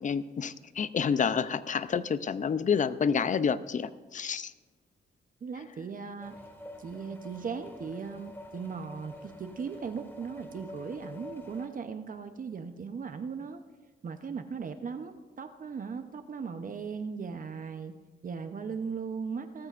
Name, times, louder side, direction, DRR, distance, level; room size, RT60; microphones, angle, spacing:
voice 1, 0.0-4.5, left 6 dB, 40° left, 14 dB, 0.6 m, -29 dB
voice 2, 5.4-6.3 6.8-13.6 14.0-17.9 18.2-19.7, right 5 dB, 45° right, 8 dB, 0.8 m, -38 dB
sound 1, 6.2-11.7, left 1 dB, 10° left, 2.0 m, -47 dB
18.0 x 13.5 x 2.5 m, 1.3 s
cardioid pair, 95°, 19 cm